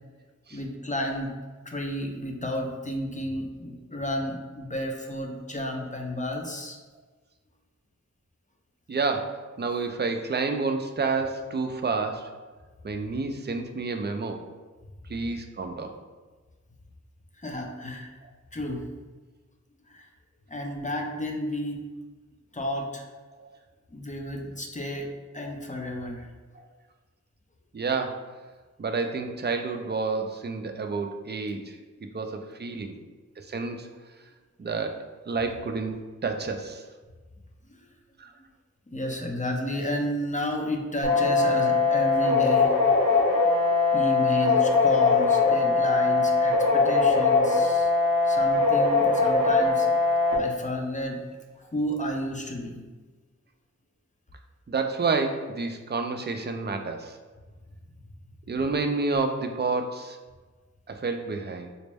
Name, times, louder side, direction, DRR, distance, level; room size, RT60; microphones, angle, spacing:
voice 1, 0.5-1.3 1.6-6.8 17.4-18.1 18.5-18.9 19.9-20.1 20.5-21.8 22.5-23.0 23.9-26.3 32.0-32.1 32.8-32.9 37.6-37.8 38.9-42.7 43.9-47.9 48.2-51.2 51.6-52.8, left 1 dB, 25° left, 1 dB, 0.5 m, -32 dB
voice 2, 8.9-12.3 12.8-14.4 15.1-15.9 23.3-23.5 26.5-26.6 27.7-28.3 28.8-31.8 32.1-33.0 33.4-33.9 34.6-36.8 38.2-38.3 54.7-57.2 58.5-60.2 60.9-61.7, right 4 dB, 35° right, 5 dB, 0.4 m, -29 dB
sound 1, 41.0-50.3, left 4 dB, 85° left, 1.3 m, -21 dB
4.1 x 2.1 x 3.4 m, 1.3 s
wide cardioid pair, 55°, 31 cm